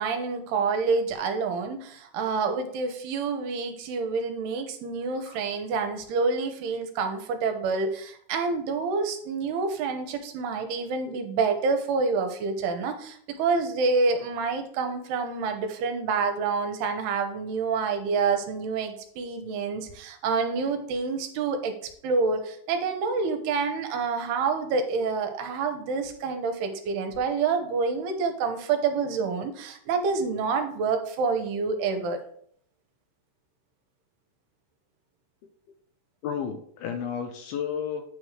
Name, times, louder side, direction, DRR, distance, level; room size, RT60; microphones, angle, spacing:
voice 1, 0.0-21.8 22.0-32.2, right 4 dB, 80° right, 6 dB, 2.7 m, -27 dB
voice 2, 36.2-38.0, left 7 dB, 80° left, 7 dB, 2.4 m, -32 dB
9.3 x 3.1 x 6.4 m, 0.63 s
omnidirectional pair, 4.9 m